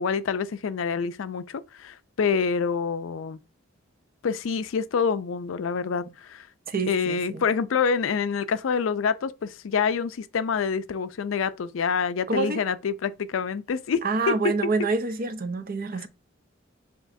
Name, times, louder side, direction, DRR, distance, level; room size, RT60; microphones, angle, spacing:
voice 1, 0.0-3.4 4.2-6.5 6.9-14.0 14.3-14.5, left 6 dB, 80° left, 0.4 m, -26 dB
voice 2, 6.7-7.4 12.3-12.6 14.0-16.1, right 4 dB, 50° right, 0.6 m, -27 dB
6.2 x 2.9 x 2.6 m
head